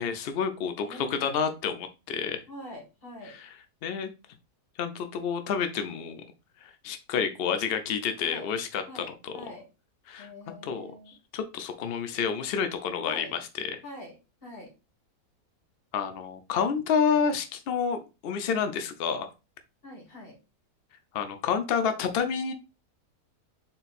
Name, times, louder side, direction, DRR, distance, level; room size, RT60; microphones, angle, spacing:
voice 1, 0.0-2.4 3.2-3.5 3.8-4.1 4.8-6.2 6.6-9.3 10.1-10.3 10.6-13.8 15.9-19.3 21.1-22.5, left 6 dB, 90° left, 8 dB, 0.5 m, -29 dB
voice 2, 0.8-1.4 2.5-3.3 8.2-8.5 8.9-9.7 10.2-11.1 13.0-13.3 13.8-14.7 19.8-20.4, left 1 dB, 40° left, -1 dB, 1.6 m, -44 dB
4.0 x 3.8 x 2.4 m, 0.28 s
omnidirectional pair, 1.6 m